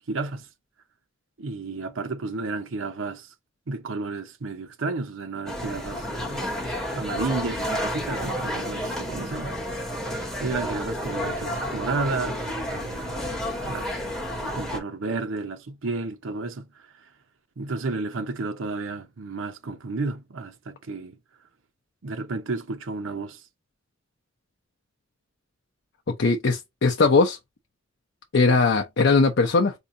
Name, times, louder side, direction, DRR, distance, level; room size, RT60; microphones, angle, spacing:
voice 1, 0.1-0.5 1.4-3.3 3.7-6.5 6.9-9.6 10.4-12.4 12.7-13.2 13.6-13.9 14.5-16.7 17.6-21.2 22.0-23.4, right 3 dB, 70° right, 0.7 m, -32 dB
sound 1, 5.5-14.8, equal, ahead, 1.6 m, -31 dB
voice 2, 26.1-27.4 28.3-29.7, left 3 dB, 60° left, 0.6 m, -20 dB
4.5 x 2.7 x 2.5 m
head